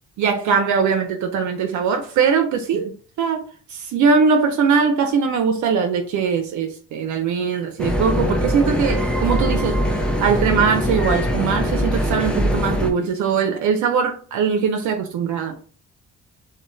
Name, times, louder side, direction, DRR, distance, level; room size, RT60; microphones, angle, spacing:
voice 1, 0.2-9.8 10.2-15.5, right 6 dB, 70° right, 5 dB, 0.5 m, -21 dB
sound 1, 7.8-12.9, equal, 5° left, 0.5 m, -22 dB
2.2 x 2.0 x 3.7 m, 0.40 s
cardioid pair, 90°, 30 cm